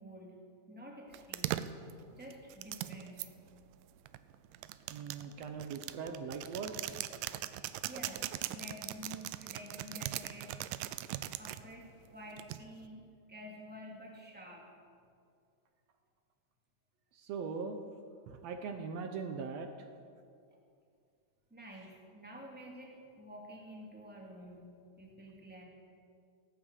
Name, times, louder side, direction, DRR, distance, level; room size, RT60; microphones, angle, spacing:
voice 1, 0.0-1.7 2.1-3.3 7.9-10.6 11.4-14.7 21.5-24.7 25.0-25.6, equal, 5° right, -2 dB, 2.0 m, -50 dB
sound 1, 1.1-3.3 4.1-11.6 12.4-12.9, right 14 dB, 90° right, 2.2 m, -40 dB
voice 2, 4.9-6.7 17.2-17.8 18.3-19.9, right 5 dB, 70° right, 6 dB, 1.7 m, -40 dB
17.5 x 8.9 x 8.2 m, 2.3 s
omnidirectional pair, 3.8 m